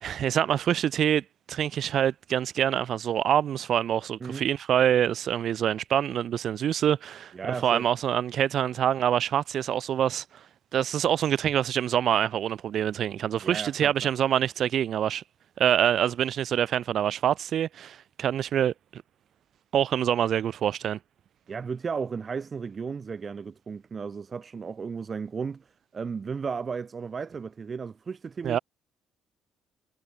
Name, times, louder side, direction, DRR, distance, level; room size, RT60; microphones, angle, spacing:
voice 1, 0.0-7.3 7.6-10.4 10.7-15.2 15.6-19.0 19.7-21.0 28.4-28.6, right 10 dB, 60° right, 0.8 m, -25 dB
voice 2, 7.3-7.8 13.4-14.1 21.5-28.6, right 5 dB, 35° right, 2.3 m, -34 dB
supercardioid pair, 80°, 0 cm